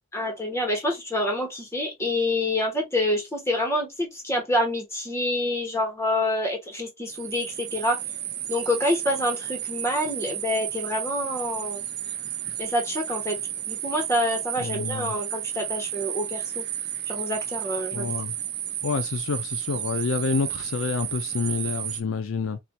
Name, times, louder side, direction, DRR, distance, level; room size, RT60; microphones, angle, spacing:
voice 1, 0.1-8.0 8.5-11.8 12.6-13.4 13.7-16.6 17.1-18.1, left 1 dB, 15° left, 1.3 m, -27 dB
sound 1, 7.1-22.0, right 11 dB, 50° right, 0.5 m, -32 dB
voice 2, 14.6-15.1 17.9-18.3 18.8-22.6, left 5 dB, 70° left, 0.5 m, -28 dB
4.2 x 2.6 x 2.2 m
head